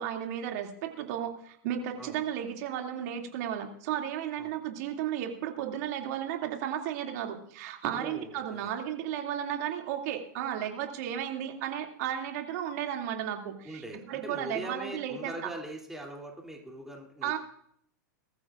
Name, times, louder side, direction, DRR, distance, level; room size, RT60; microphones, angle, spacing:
voice 1, 0.0-15.5 17.2-17.4, right 10 dB, 60° right, 3 dB, 2.6 m, -34 dB
voice 2, 7.9-8.7 13.6-17.4, right 1 dB, 5° right, 0 dB, 3.0 m, -42 dB
20.5 x 14.0 x 2.5 m, 0.67 s
hypercardioid pair, 105°, 10 cm